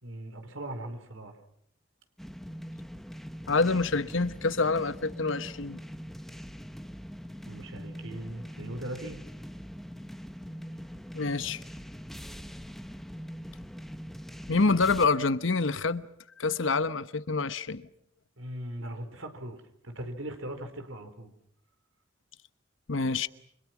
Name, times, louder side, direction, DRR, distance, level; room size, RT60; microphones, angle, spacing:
voice 1, 0.0-1.4 7.5-9.2 18.4-21.3, right 1 dB, 85° right, 4.5 m, -39 dB
sound 1, 2.2-15.1, equal, ahead, 1.0 m, -43 dB
voice 2, 3.5-5.8 11.1-11.6 14.5-16.1 16.4-17.9 22.9-23.3, left 3 dB, 70° left, 1.1 m, -27 dB
29.5 x 26.0 x 6.1 m
head